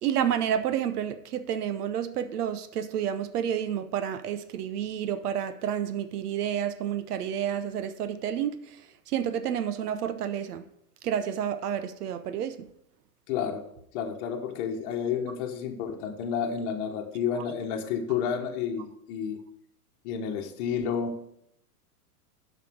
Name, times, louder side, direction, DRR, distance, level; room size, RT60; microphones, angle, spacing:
voice 1, 0.0-8.8 9.1-10.6 11.0-12.7 17.3-17.4, right 9 dB, 80° right, 0.9 m, -30 dB
voice 2, 13.3-13.6 13.9-19.4 20.0-21.1, left 7 dB, 50° left, 1.2 m, -30 dB
7.6 x 5.8 x 6.0 m
hypercardioid pair, 130°, 46 cm